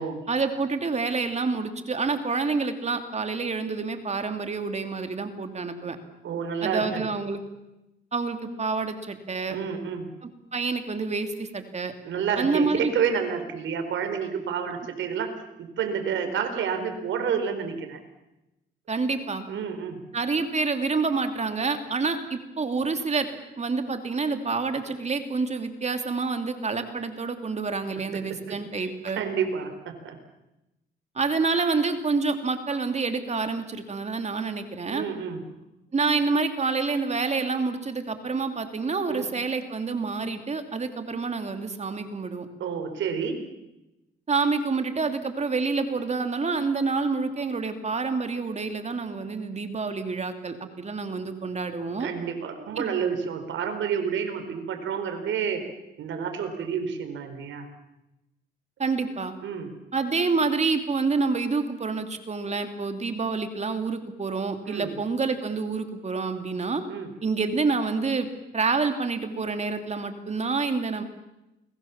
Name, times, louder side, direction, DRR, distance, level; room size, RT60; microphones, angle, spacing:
voice 1, 0.3-6.0 6.6-7.4 8.1-9.6 10.2-11.9 12.4-12.9 18.9-19.4 20.1-23.3 23.6-29.2 31.1-35.0 35.9-42.5 44.3-52.1 52.8-52.9 58.8-59.3 59.9-66.8 67.2-71.0, right 4 dB, 35° right, 7 dB, 2.8 m, -28 dB
voice 2, 6.2-7.1 9.5-10.1 12.0-15.3 15.6-18.0 19.5-20.0 28.1-30.2 34.9-35.4 39.1-39.3 42.6-43.5 52.0-55.7 56.0-57.7 59.4-59.7 64.7-65.0 66.9-67.1, right 7 dB, 75° right, 6 dB, 4.7 m, -29 dB
29.0 x 22.0 x 7.4 m, 0.95 s
cardioid pair, 90°, 20 cm